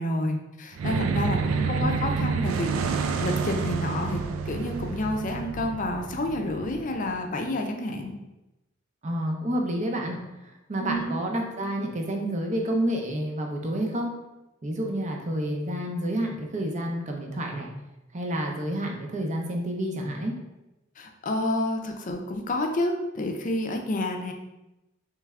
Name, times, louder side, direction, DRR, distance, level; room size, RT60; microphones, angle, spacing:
voice 1, 0.0-4.2 4.5-8.2 10.8-11.2 21.0-24.3, left 1 dB, 40° left, 4 dB, 0.5 m, -29 dB
sound 1, 0.7-7.3, right 5 dB, 80° right, 0.4 m, -29 dB
voice 2, 1.4-1.9 9.0-14.1 14.6-17.7 18.1-20.3, right 1 dB, 35° right, 1 dB, 0.6 m, -29 dB
3.4 x 3.2 x 3.5 m, 0.97 s
head